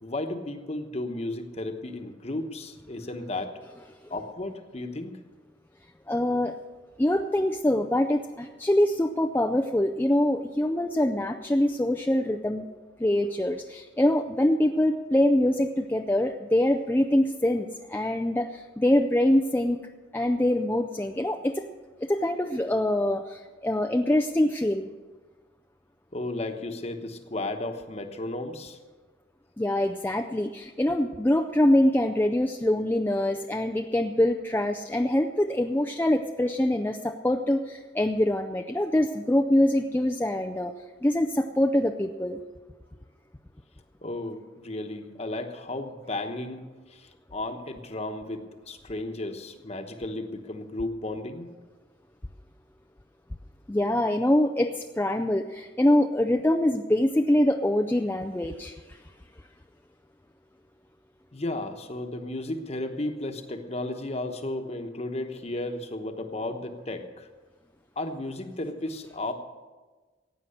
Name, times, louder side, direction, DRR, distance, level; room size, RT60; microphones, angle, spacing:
voice 1, 0.0-3.5 4.1-5.2 26.1-28.8 44.0-51.5 61.3-67.3 68.0-69.3, left 2 dB, 35° left, 6 dB, 1.1 m, -34 dB
voice 2, 6.1-6.6 7.0-12.7 13.0-19.8 20.1-21.7 22.0-24.9 29.6-40.7 41.0-42.4 53.7-59.0, left 1 dB, 10° left, 5 dB, 0.4 m, -24 dB
15.5 x 9.1 x 6.6 m, 1.3 s
head